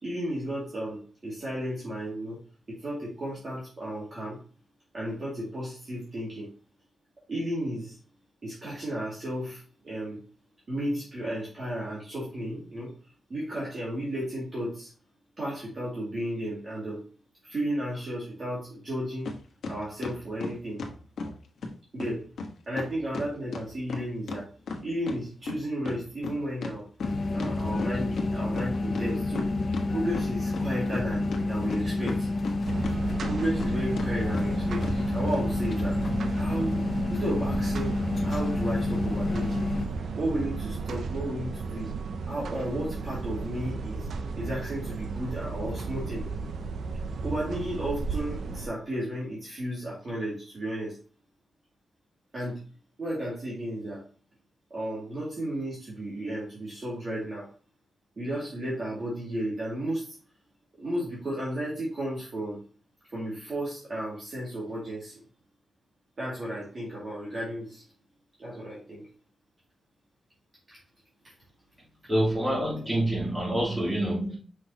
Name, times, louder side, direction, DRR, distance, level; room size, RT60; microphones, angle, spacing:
voice 1, 0.0-2.4 2.7-4.4 4.9-6.5 7.3-8.0 8.4-10.2 10.7-12.9 13.3-14.9 15.4-17.0 17.4-19.3 19.7-20.9 21.9-22.3 22.7-24.5 24.8-32.3 33.2-36.0 36.3-36.8 37.1-38.0 38.2-39.7 40.2-41.9 42.3-44.1 44.4-46.3 47.2-51.0 52.3-52.6 53.0-54.0 54.7-57.5 58.2-60.2 60.8-62.6 63.1-65.2 66.2-67.8 68.4-69.1 70.7-70.8 71.2-71.3, right 1 dB, 35° right, 2.3 m, -33 dB
sound 1, 19.3-19.4 19.6-21.3 21.6-21.7 22.0-22.1 22.4-22.5 22.8-25.2 25.5-28.3 28.6-28.7 28.9-29.9 30.1-31.0 31.3-32.9 33.2-33.7 34.0-34.1 34.3-34.5 34.8-35.0 35.3-35.4, left 4 dB, 80° left, 1.2 m, -35 dB
sound 2, 27.0-39.9, left 2 dB, 40° left, 0.6 m, -29 dB
sound 3, 32.6-48.7, right 4 dB, 70° right, 0.6 m, -34 dB
voice 2, 72.0-74.4, right 1 dB, 15° right, 3.1 m, -27 dB
5.9 x 5.6 x 2.9 m
wide cardioid pair, 165°, 0 cm